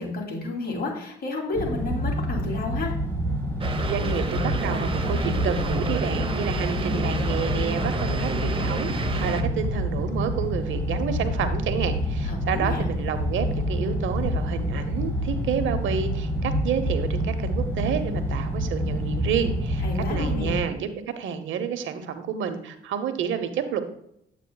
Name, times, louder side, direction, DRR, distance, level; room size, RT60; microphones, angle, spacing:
voice 1, 0.0-2.9 12.2-12.8 19.8-20.6, left 2 dB, 50° left, -1 dB, 2.9 m, -31 dB
sound 1, 1.5-20.6, equal, 10° left, 3.2 m, -27 dB
sound 2, 3.6-9.4, right 3 dB, 25° right, 1.0 m, -31 dB
voice 2, 3.8-19.8 20.1-20.9 21.2-23.8, right 8 dB, 75° right, 9 dB, 1.0 m, -29 dB
9.1 x 8.2 x 2.3 m, 0.75 s
cardioid pair, 90°, 20 cm